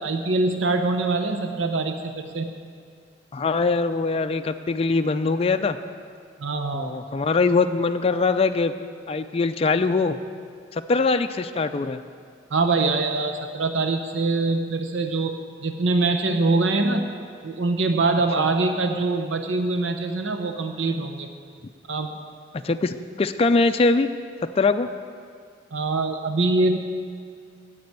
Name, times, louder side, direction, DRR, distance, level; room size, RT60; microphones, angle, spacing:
voice 1, 0.0-2.5 6.4-6.9 12.5-17.1 17.4-21.3 21.9-22.2 25.7-26.8, right 3 dB, 80° right, 6 dB, 0.7 m, -24 dB
voice 2, 3.3-5.8 6.7-8.7 9.1-10.2 10.7-12.0 18.4-18.5 22.6-24.1 24.6-24.9, left 3 dB, 30° left, 8 dB, 0.4 m, -22 dB
9.6 x 7.7 x 9.3 m, 2.2 s
head